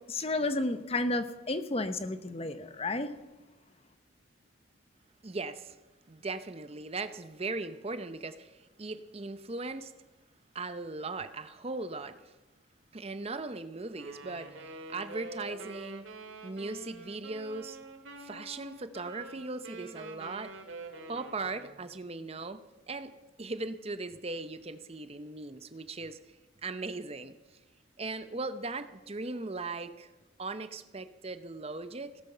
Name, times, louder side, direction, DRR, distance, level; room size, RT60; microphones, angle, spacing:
voice 1, 0.1-3.1, left 2 dB, 30° left, 10 dB, 0.8 m, -31 dB
voice 2, 5.2-5.8 6.1-9.9 10.5-12.3 12.9-16.0 16.4-17.8 18.2-20.5 21.1-23.1 23.4-26.2 26.6-27.3 28.0-30.1 30.4-32.1, right 3 dB, 30° right, 11 dB, 0.7 m, -38 dB
Wind instrument woodwind instrument, 13.9-21.9, right 2 dB, 70° right, 2.1 m, -46 dB
17.5 x 13.0 x 5.6 m, 1.1 s
head